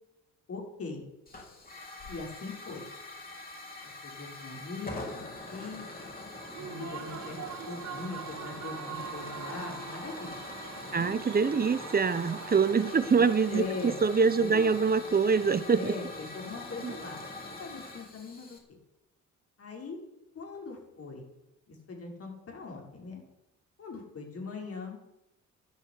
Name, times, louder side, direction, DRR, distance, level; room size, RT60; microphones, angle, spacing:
voice 1, 0.5-1.0 2.1-2.9 3.8-5.8 6.5-10.4 10.8-11.2 13.2-14.0 14.4-14.6 15.8-18.8 19.6-20.0 20.3-21.3 21.7-23.2 23.8-25.0, left 4 dB, 50° left, 0 dB, 6.1 m, -41 dB
Hiss / Fire, 1.3-18.6, left 2 dB, 30° left, 5.4 m, -43 dB
Human voice / Cheering / Applause, 6.3-14.0, right 8 dB, 60° right, 1.5 m, -43 dB
voice 2, 10.9-15.9 16.8-16.9, right 5 dB, 30° right, 14 dB, 1.0 m, -25 dB
12.0 x 11.5 x 9.8 m, 0.93 s
cardioid pair, 90°, 30 cm